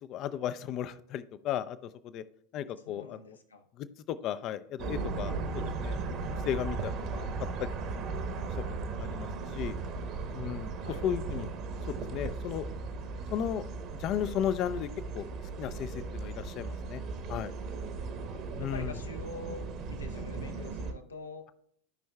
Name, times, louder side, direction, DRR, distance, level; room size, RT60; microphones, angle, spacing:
voice 1, 0.0-2.2 2.5-3.4 3.8-6.0 6.4-7.3 7.6-8.1 8.6-9.8 10.3-10.7 11.0-11.5 11.9-12.7 13.3-13.6 14.0-14.9 15.1-15.3 15.6-17.0 17.3-17.5 18.6-19.0, left 10 dB, 40° left, 14 dB, 0.5 m, -35 dB
voice 2, 2.8-3.7 5.9-6.0 10.8-11.0 18.0-21.5, left 3 dB, 75° left, 6 dB, 0.9 m, -46 dB
sound 1, 4.8-20.9, right 4 dB, 40° right, 1.1 m, -37 dB
14.5 x 5.4 x 2.3 m, 0.69 s
figure-of-eight pair, 85°, 0 cm